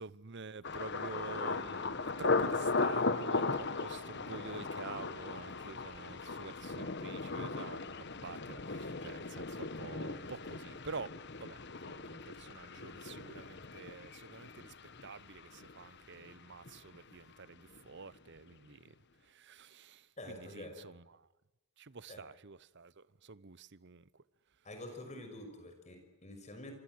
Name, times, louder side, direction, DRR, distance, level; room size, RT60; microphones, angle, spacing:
voice 1, 0.0-19.0 19.2-21.3 21.8-24.2, right 4 dB, 50° right, 0.9 m, -48 dB
Thunder, 0.6-16.4 16.7-17.3 17.7-18.0, left 3 dB, 50° left, 1.3 m, -37 dB
voice 2, 20.2-20.8 22.1-22.2 24.6-26.7, left 1 dB, 30° left, 6.0 m, -47 dB
26.0 x 24.0 x 7.8 m
head